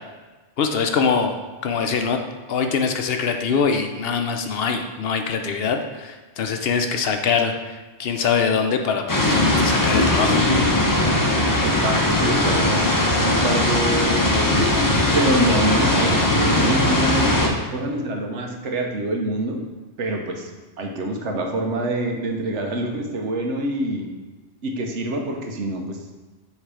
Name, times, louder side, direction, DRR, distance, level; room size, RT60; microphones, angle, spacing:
voice 1, 0.6-1.4 1.6-10.6 16.3-16.4, left 5 dB, 65° left, 5 dB, 0.8 m, -23 dB
sound 1, 9.1-17.5, left 1 dB, 20° left, 0.6 m, -19 dB
voice 2, 11.6-12.7 13.2-14.3 15.1-19.6 20.0-20.5 20.8-24.1 24.6-26.0, right 1 dB, 85° right, 2 dB, 1.2 m, -25 dB
7.6 x 3.2 x 4.9 m, 1.3 s
omnidirectional pair, 1.2 m